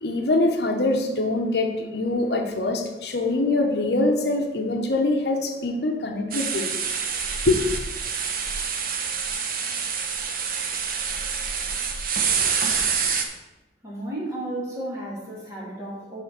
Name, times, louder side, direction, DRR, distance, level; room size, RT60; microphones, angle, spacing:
voice 1, 0.0-6.7 7.5-7.6, left 2 dB, 60° left, 3 dB, 0.9 m, -24 dB
sound 1, 6.3-13.2, right 6 dB, 50° right, 0.8 m, -27 dB
voice 2, 13.8-16.2, right 1 dB, 15° right, -6 dB, 2.6 m, -33 dB
6.2 x 5.1 x 6.8 m, 1.1 s
head